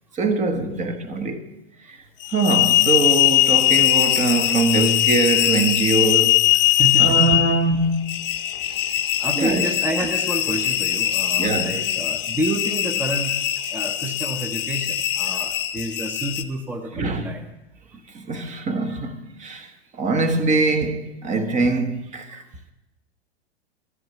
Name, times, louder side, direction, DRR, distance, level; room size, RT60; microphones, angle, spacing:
voice 1, 0.1-1.4 1.9-2.0 2.3-6.6 7.0-8.1 9.4-9.7 11.4-11.8 16.9-17.3 18.1-22.4, right 3 dB, 20° right, 1.1 m, -23 dB
sound 1, 2.2-16.4, left 14 dB, 35° left, 0.8 m, -21 dB
voice 2, 6.7-7.4 9.2-13.4 13.7-17.5 22.4-22.5, right 1 dB, 5° right, 0.7 m, -29 dB
12.5 x 7.8 x 7.1 m
hypercardioid pair, 120°, 33 cm